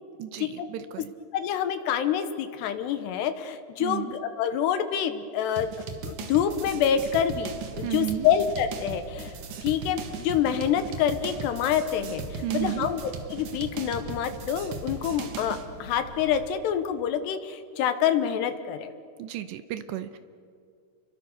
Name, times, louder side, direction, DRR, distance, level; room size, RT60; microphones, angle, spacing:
voice 1, 0.2-1.1 3.8-4.1 7.8-8.3 12.4-12.9 19.2-20.2, right 12 dB, 75° right, 11 dB, 2.7 m, -32 dB
voice 2, 1.3-5.7 6.0-9.3 9.6-18.9, left 9 dB, 75° left, 9 dB, 2.9 m, -27 dB
sound 1, 5.6-15.7, right 5 dB, 60° right, 2.2 m, -38 dB
sound 2, 6.5-16.5, right 1 dB, 25° right, 3.9 m, -45 dB
29.5 x 23.0 x 6.5 m, 2.2 s
omnidirectional pair, 5.6 m